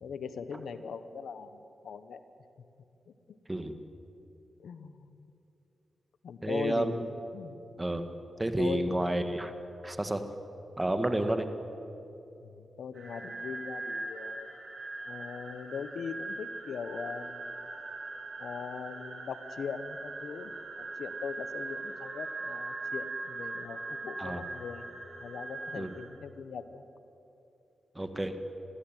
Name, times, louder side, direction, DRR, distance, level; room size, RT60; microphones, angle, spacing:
voice 1, 0.0-2.2 4.6-5.1 6.2-7.1 7.3-7.6 8.6-9.1 12.4-14.5 15.1-17.5 18.4-24.9 25.2-26.8, left 6 dB, 80° left, 11 dB, 1.0 m, -40 dB
voice 2, 6.4-6.9 7.8-8.0 8.4-9.5 9.8-10.2 10.8-11.5 24.2-24.4 25.7-25.9 28.0-28.4, right 1 dB, 20° right, 8 dB, 1.9 m, -30 dB
sound 1, 12.9-26.0, right 3 dB, 60° right, 5.2 m, -41 dB
21.0 x 15.0 x 9.1 m, 2.8 s
cardioid pair, 60°, 0 cm